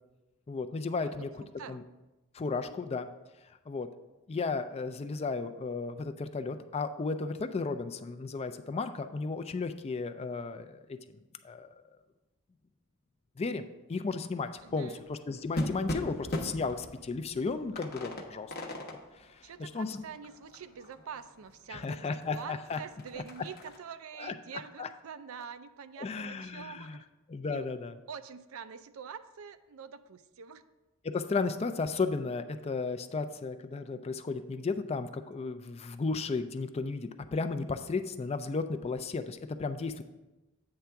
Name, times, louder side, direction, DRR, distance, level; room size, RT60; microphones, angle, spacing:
voice 1, 0.5-1.3 1.7-1.8 2.3-3.1 3.7-3.9 4.3-11.0 11.4-11.7 13.4-13.6 13.9-18.5 19.6-20.0 21.7-22.8 24.2-24.3 24.8-24.9 26.0-27.0 27.3-27.9 31.0-40.0, left 4 dB, 30° left, 9 dB, 0.4 m, -34 dB
voice 2, 1.0-1.8 14.6-15.0 19.4-27.1 27.5-27.7 28.1-30.6, right 6 dB, 75° right, 12 dB, 0.4 m, -46 dB
sound 1, 14.6-21.5 21.9-22.0 22.2-23.8, left 1 dB, 45° left, 0.8 m, -40 dB
8.7 x 3.4 x 5.7 m, 1.1 s
head